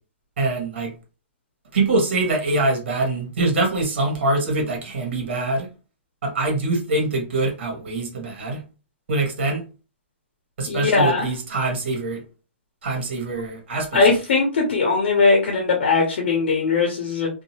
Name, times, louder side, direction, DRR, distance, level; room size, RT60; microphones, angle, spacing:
voice 1, 0.4-0.9 1.7-5.7 6.2-8.6 9.1-9.6 10.6-12.2 12.8-13.9, right 2 dB, 65° right, 1 dB, 1.4 m, -24 dB
voice 2, 10.7-11.3 13.9-17.3, left 4 dB, 60° left, 0 dB, 0.8 m, -19 dB
2.7 x 2.5 x 2.8 m, 0.33 s
hypercardioid pair, 170°, 7 cm